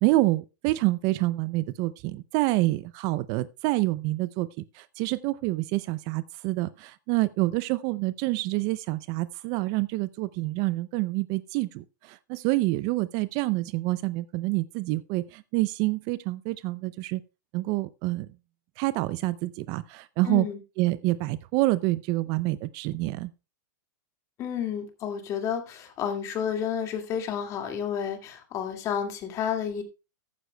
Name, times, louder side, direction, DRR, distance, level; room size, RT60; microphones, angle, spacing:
voice 1, 0.0-17.2 17.5-18.3 18.8-20.5 20.8-23.3, right 19 dB, 35° right, 0.4 m, -27 dB
voice 2, 20.2-20.6 24.4-29.8, left 8 dB, 30° left, 2.1 m, -31 dB
14.5 x 9.3 x 2.2 m
hypercardioid pair, 140°, 11 cm